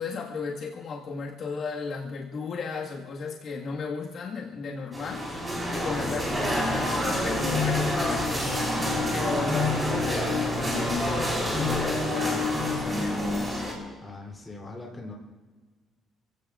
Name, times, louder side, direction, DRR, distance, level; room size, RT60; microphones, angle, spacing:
voice 1, 0.0-5.4 5.7-13.3, left 5 dB, 50° left, -3 dB, 1.7 m, -35 dB
sound 1, 4.9-13.7, left 1 dB, 15° right, 4.2 m, -27 dB
voice 2, 14.0-15.1, left 2 dB, 10° left, -2 dB, 3.2 m, -41 dB
28.0 x 16.5 x 2.5 m, 1.4 s
cardioid pair, 170°, 0 cm